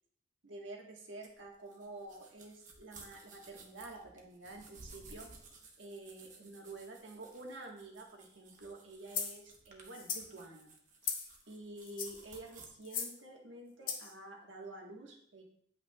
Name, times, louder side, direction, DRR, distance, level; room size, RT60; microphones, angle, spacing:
voice 1, 0.4-5.3 5.8-10.7 11.0-11.2 11.5-15.4, right 2 dB, 80° right, 1 dB, 1.4 m, -49 dB
sound 1, 1.2-12.7, right 3 dB, 40° right, 0.9 m, -57 dB
sound 2, 9.1-9.4 9.9-10.3 11.0-11.3 11.8-12.2 12.8-13.2 13.9-14.1, left 7 dB, 45° left, 0.8 m, -38 dB
9.2 x 5.7 x 2.3 m, 0.65 s
head